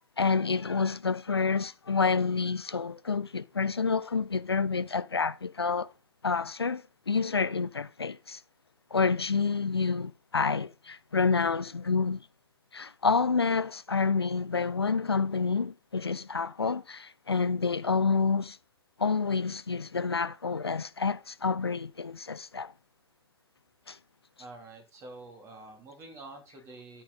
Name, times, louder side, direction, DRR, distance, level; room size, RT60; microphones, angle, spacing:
voice 1, 0.2-5.9 6.2-8.4 8.9-12.2 12.7-18.6 19.0-22.7 23.9-24.0, left 5 dB, 85° left, 0.5 m, -28 dB
voice 2, 24.4-27.0, right 2 dB, 20° right, 2.9 m, -47 dB
13.0 x 5.2 x 4.0 m
figure-of-eight pair, 115°, 13 cm